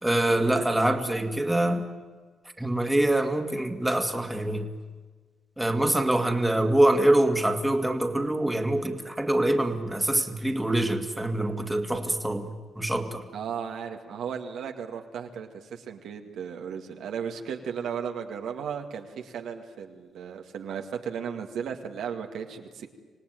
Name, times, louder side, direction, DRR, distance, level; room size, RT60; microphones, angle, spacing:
voice 1, 0.0-1.9 2.6-4.7 5.6-13.3, right 1 dB, 10° right, 4 dB, 2.2 m, -25 dB
voice 2, 13.3-22.9, right 7 dB, 80° right, 3 dB, 2.1 m, -35 dB
26.5 x 18.0 x 9.3 m, 1.4 s
cardioid pair, 70°, 0 cm